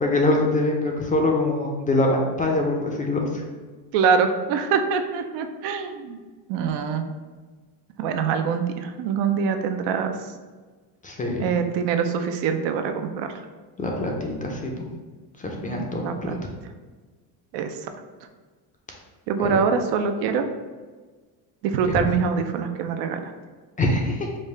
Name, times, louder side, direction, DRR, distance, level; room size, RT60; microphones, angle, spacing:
voice 1, 0.0-3.4 11.0-11.5 13.8-14.7 15.4-16.4 19.4-19.6 21.9-22.0 23.8-24.3, left 2 dB, 20° left, 0 dB, 0.4 m, -24 dB
voice 2, 3.9-6.2 6.5-7.0 8.0-10.1 11.4-13.3 15.7-16.4 17.5-17.7 19.3-20.5 21.6-23.2, right 6 dB, 70° right, 7 dB, 0.5 m, -24 dB
5.2 x 2.1 x 3.2 m, 1.4 s
cardioid pair, 120°, 44 cm